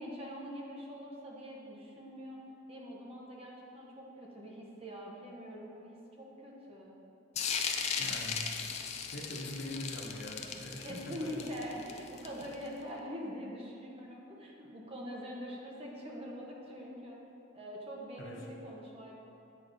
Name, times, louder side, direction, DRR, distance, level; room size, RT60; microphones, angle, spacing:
voice 1, 0.0-2.4 2.7-6.9 10.8-17.2 17.5-19.1, equal, 30° right, -2 dB, 0.9 m, -44 dB
sound 1, 7.4-12.7, left 6 dB, 35° left, 0.4 m, -37 dB
voice 2, 8.0-8.6 9.1-11.4 18.2-18.4, left 1 dB, 85° left, -2 dB, 1.0 m, -43 dB
8.5 x 5.9 x 2.6 m, 2.7 s
head